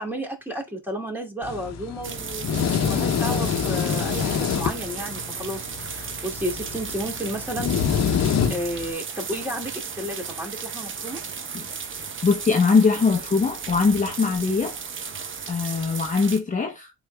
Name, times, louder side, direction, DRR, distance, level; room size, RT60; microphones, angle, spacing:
voice 1, 0.0-8.2 8.5-11.2, equal, 5° right, 2.4 m, -32 dB
sound 1, 1.4-8.9, left 7 dB, 60° left, 0.9 m, -26 dB
sound 2, 2.0-16.4, right 6 dB, 40° right, 1.0 m, -35 dB
voice 2, 12.2-14.7 15.1-16.9, left 4 dB, 25° left, 0.8 m, -22 dB
11.5 x 4.1 x 2.2 m
cardioid pair, 90°, 30 cm